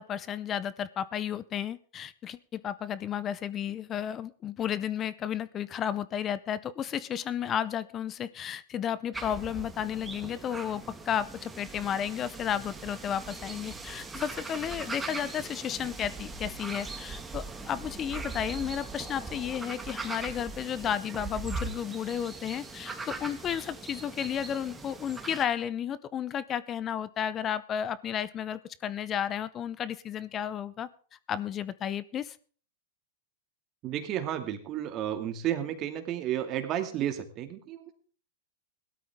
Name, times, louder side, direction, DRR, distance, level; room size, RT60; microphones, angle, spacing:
voice 1, 0.0-30.9 31.3-32.4, left 9 dB, 30° left, 18 dB, 0.6 m, -33 dB
sound 1, 9.1-25.4, right 3 dB, 10° right, 1.9 m, -40 dB
voice 2, 33.8-38.0, right 11 dB, 40° right, 7 dB, 2.2 m, -32 dB
17.5 x 12.5 x 3.6 m, 0.43 s
hypercardioid pair, 125°, 0 cm